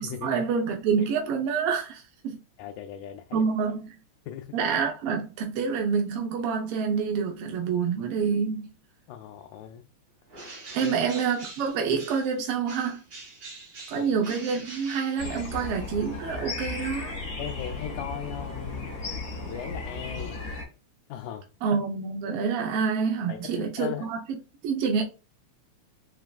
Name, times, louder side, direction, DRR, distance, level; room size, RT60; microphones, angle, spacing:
voice 1, 0.0-2.4 3.3-3.9 4.5-8.7 10.7-13.0 13.9-17.2 21.6-24.4 24.6-25.0, right 6 dB, 80° right, 1.3 m, -27 dB
voice 2, 2.6-3.4 4.3-4.6 9.1-9.8 10.8-11.0 13.9-14.1 17.4-19.0 19.5-20.4 21.1-21.5 23.3-24.1, left 10 dB, 85° left, 1.9 m, -38 dB
Bird, 10.3-12.4 12.7-15.7, right 3 dB, 45° right, 2.3 m, -44 dB
sound 1, 15.2-20.6, left 3 dB, 45° left, 2.2 m, -35 dB
5.4 x 3.3 x 2.3 m
omnidirectional pair, 3.4 m